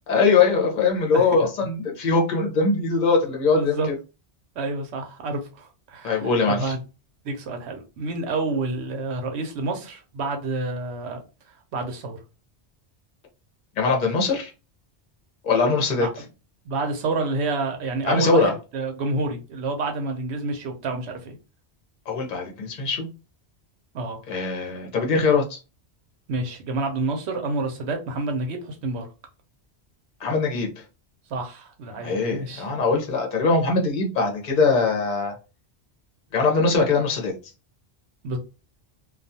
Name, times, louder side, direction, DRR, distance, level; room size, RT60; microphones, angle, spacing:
voice 1, 0.1-3.9 6.0-6.7 13.8-14.5 15.4-16.1 18.0-18.5 22.1-23.1 24.3-25.6 30.2-30.8 32.0-35.3 36.3-37.3, left 4 dB, 45° left, 0.8 m, -22 dB
voice 2, 3.5-3.9 4.6-6.8 7.2-11.2 11.7-12.2 16.0-16.1 16.6-21.4 23.9-24.2 26.3-29.1 31.3-32.6 38.2-38.4, right 3 dB, 75° right, 1.0 m, -28 dB
2.3 x 2.3 x 2.6 m
omnidirectional pair, 1.1 m